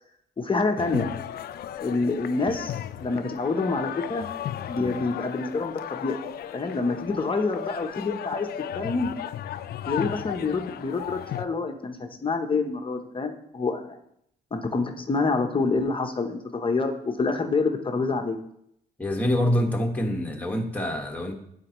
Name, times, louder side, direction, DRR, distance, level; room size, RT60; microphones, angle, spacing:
voice 1, 0.4-1.1 1.8-4.3 4.7-6.2 6.5-8.5 8.7-9.1 9.9-13.8 14.5-18.4, left 3 dB, 30° left, 4 dB, 0.9 m, -27 dB
sound 1, 0.8-11.5, left 11 dB, 65° left, 0.4 m, -35 dB
voice 2, 19.0-21.3, left 1 dB, 10° left, 0 dB, 1.6 m, -26 dB
9.6 x 4.4 x 3.0 m, 0.74 s
cardioid pair, 75°, 17 cm